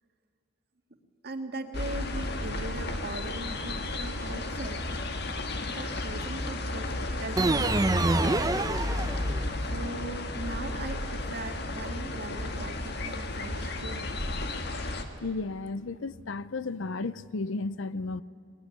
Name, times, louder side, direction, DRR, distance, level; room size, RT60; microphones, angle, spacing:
voice 1, 1.2-4.8 5.5-8.2 9.7-14.1, right 2 dB, 50° right, 5 dB, 1.9 m, -39 dB
sound 1, 1.7-15.0, left 2 dB, 55° left, 1.7 m, -33 dB
sound 2, 7.4-9.7, right 2 dB, 20° right, 0.7 m, -26 dB
voice 2, 15.2-18.2, left 3 dB, 70° left, 17 dB, 0.6 m, -33 dB
21.5 x 20.5 x 9.7 m, 2.5 s
head